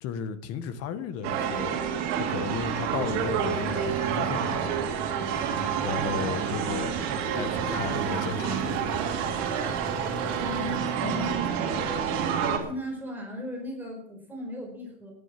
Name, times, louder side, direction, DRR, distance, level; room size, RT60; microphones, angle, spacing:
voice 1, 0.0-1.8 2.2-4.8 5.8-6.9 7.3-8.8, left 7 dB, 40° left, 12 dB, 1.5 m, -34 dB
sound 1, 1.2-12.6, right 8 dB, 45° right, 3.5 m, -29 dB
sound 2, 2.9-10.8, right 2 dB, 30° right, 3.8 m, -39 dB
voice 2, 10.3-12.1 12.4-15.1, left 1 dB, 5° right, -1 dB, 4.8 m, -37 dB
16.5 x 10.5 x 5.9 m, 0.66 s
supercardioid pair, 150°, 37 cm